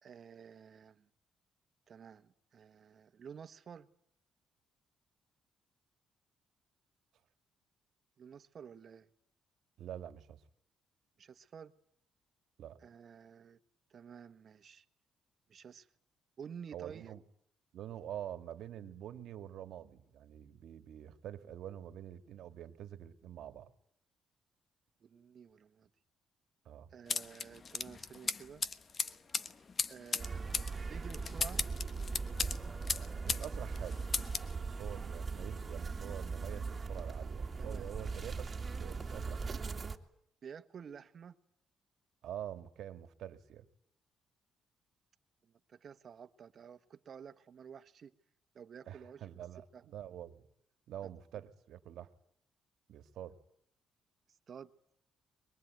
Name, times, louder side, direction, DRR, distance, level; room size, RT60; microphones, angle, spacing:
voice 1, 0.0-1.1 1.9-3.9 8.2-9.1 11.2-11.7 12.8-13.6 13.9-14.8 15.5-15.9 16.4-17.1 25.0-25.9 26.9-28.6 29.9-31.6 37.6-37.9 40.4-41.4 45.4-48.1 48.5-49.4 49.7-49.9 51.0-51.1 54.3-54.7, right 7 dB, 50° right, 11 dB, 1.4 m, -51 dB
voice 2, 9.8-10.4 12.6-12.8 16.7-17.2 17.7-23.7 26.7-26.9 33.2-34.1 34.4-39.7 42.2-43.6 48.9-50.4 50.9-52.1 52.9-53.4, right 11 dB, 75° right, 10 dB, 1.8 m, -46 dB
sound 1, 27.1-33.5 33.7-34.5, left 5 dB, 40° left, 1.2 m, -37 dB
sound 2, 30.2-40.0, right 4 dB, 30° right, 2.4 m, -40 dB
23.5 x 22.0 x 9.3 m, 0.69 s
cardioid pair, 90°, 0 cm